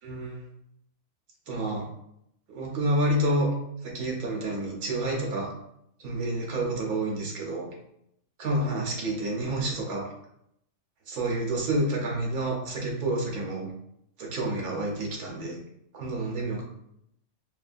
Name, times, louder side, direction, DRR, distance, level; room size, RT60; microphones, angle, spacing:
voice 1, 0.0-0.4 1.5-1.9 2.5-3.5 3.8-5.5 6.0-7.7 8.4-10.1 11.1-13.7 14.2-15.6 15.9-16.6, right 1 dB, 90° right, -1 dB, 1.5 m, -29 dB
5.4 x 2.5 x 2.6 m, 0.76 s
omnidirectional pair, 1.5 m